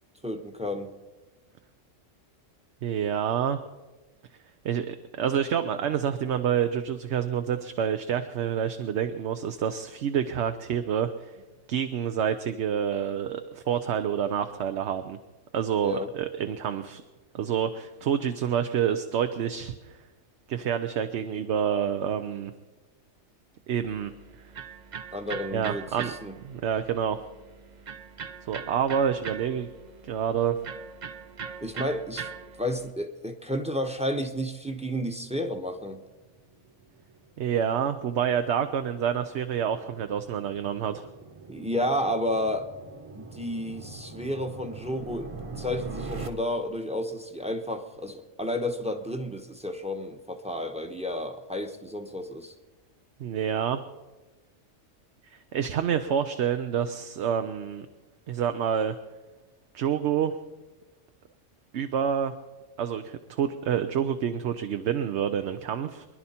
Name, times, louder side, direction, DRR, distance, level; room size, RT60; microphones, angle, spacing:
voice 1, 0.2-0.9 15.8-16.1 25.1-26.3 31.6-32.3 32.6-36.0 41.5-42.7 43.1-45.3 45.6-52.5, left 1 dB, 5° right, 6 dB, 0.9 m, -31 dB
voice 2, 2.8-3.6 4.6-11.3 11.7-15.2 15.5-17.0 17.3-20.0 20.5-22.5 23.7-24.1 25.5-26.1 26.4-27.2 28.5-29.7 30.0-30.6 37.4-41.1 53.2-53.8 55.5-57.9 58.3-59.0 59.7-60.4 61.7-62.3 62.8-66.1, right 8 dB, 65° right, 8 dB, 0.9 m, -28 dB
Electric guitar, 23.8-32.9, right 6 dB, 45° right, 0.7 m, -41 dB
sound 1, 35.7-46.3, right 3 dB, 25° right, 1.2 m, -43 dB
24.0 x 11.0 x 4.3 m, 1.2 s
omnidirectional pair, 1.3 m